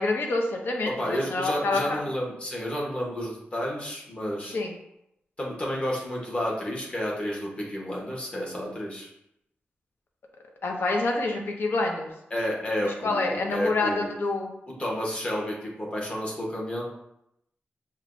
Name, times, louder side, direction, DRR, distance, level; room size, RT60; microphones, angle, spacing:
voice 1, 0.0-2.0 4.5-4.7 10.6-12.1 13.0-14.5, left 2 dB, 65° left, 1 dB, 0.7 m, -27 dB
voice 2, 1.0-4.6 5.4-9.1 12.3-14.1 14.8-16.9, equal, 30° left, -3 dB, 1.0 m, -31 dB
6.4 x 2.2 x 2.5 m, 0.81 s
wide cardioid pair, 145°, 4 cm